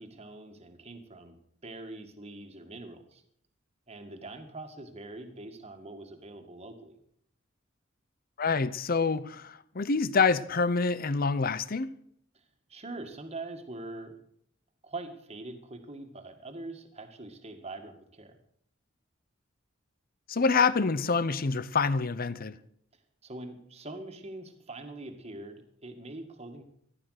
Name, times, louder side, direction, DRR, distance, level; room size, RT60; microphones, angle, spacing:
voice 1, 0.0-1.4 1.6-3.2 3.9-7.0 12.3-12.4 12.7-14.2 14.8-18.4 23.2-26.6, right 2 dB, 30° right, 1.9 m, -43 dB
voice 2, 8.4-11.9 20.3-22.6, left 4 dB, 50° left, 0.7 m, -26 dB
15.0 x 11.5 x 6.5 m
head